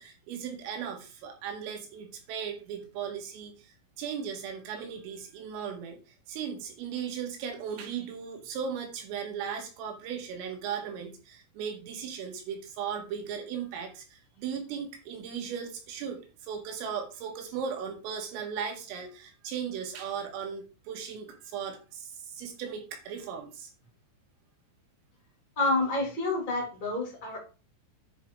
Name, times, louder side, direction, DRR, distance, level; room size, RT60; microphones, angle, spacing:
voice 1, 0.0-6.0 6.3-23.7, right 7 dB, 80° right, 3 dB, 4.6 m, -37 dB
voice 2, 25.6-27.4, left 2 dB, 15° left, -1 dB, 1.9 m, -28 dB
10.5 x 4.9 x 4.8 m, 0.33 s
omnidirectional pair, 6.0 m